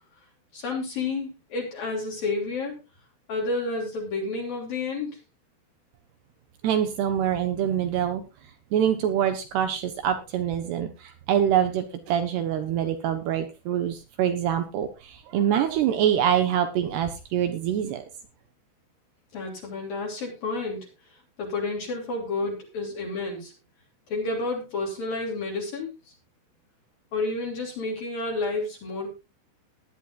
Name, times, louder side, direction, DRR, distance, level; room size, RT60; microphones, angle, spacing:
voice 1, 0.5-2.8 3.3-5.1 19.3-20.9 21.4-23.5 24.1-25.9 27.1-29.1, left 3 dB, 45° left, -2 dB, 4.6 m, -30 dB
voice 2, 6.6-8.2 8.7-18.0, right 9 dB, 70° right, 8 dB, 2.7 m, -25 dB
19.5 x 11.0 x 2.5 m, 0.27 s
omnidirectional pair, 5.9 m